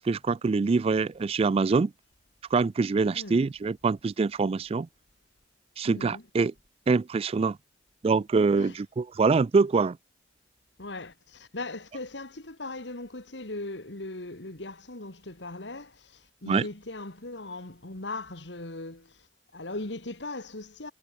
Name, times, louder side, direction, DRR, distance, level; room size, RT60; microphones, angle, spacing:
voice 1, 0.0-1.9 2.5-4.9 5.8-6.5 6.9-7.6 8.0-10.0 16.5-16.6, right 4 dB, 35° right, 0.3 m, -24 dB
voice 2, 3.1-3.5 5.8-6.2 8.6-8.8 10.8-19.3 19.5-20.9, left 2 dB, 75° left, 2.6 m, -39 dB
head